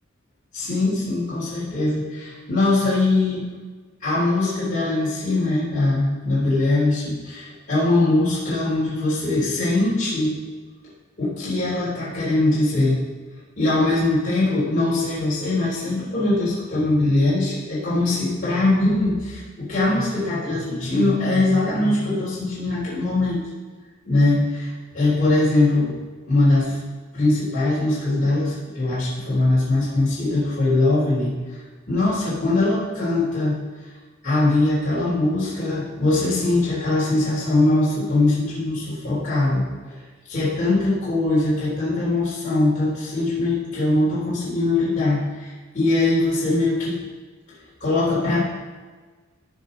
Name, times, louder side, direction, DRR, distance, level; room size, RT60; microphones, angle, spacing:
voice 1, 0.5-3.4 4.0-10.3 11.2-13.0 13.6-23.4 24.1-26.0 26.3-26.8 27.1-31.4 31.9-33.6 34.2-40.0 40.3-47.0 47.8-48.4, left 2 dB, 40° left, -10 dB, 3.4 m, -21 dB
16.0 x 5.3 x 3.9 m, 1.4 s
head